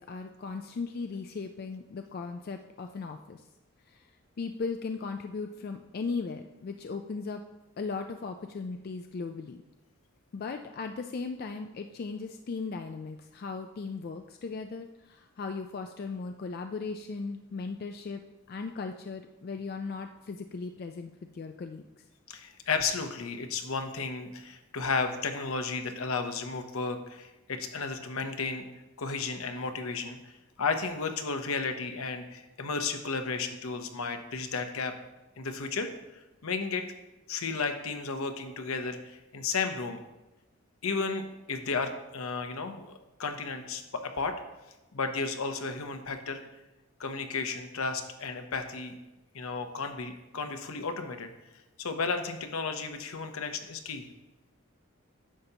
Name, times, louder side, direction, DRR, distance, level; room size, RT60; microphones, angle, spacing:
voice 1, 0.0-3.4 3.9-4.0 4.4-7.4 7.8-9.6 10.3-18.2 18.5-21.8, left 4 dB, 45° left, 6 dB, 0.3 m, -37 dB
voice 2, 22.3-28.7 29.0-34.9 35.4-36.9 37.3-40.0 40.8-44.4 44.9-46.4 47.0-48.9 49.3-51.3 51.8-54.1, left 4 dB, 75° left, 7 dB, 0.8 m, -33 dB
10.0 x 6.6 x 2.9 m, 1.0 s
head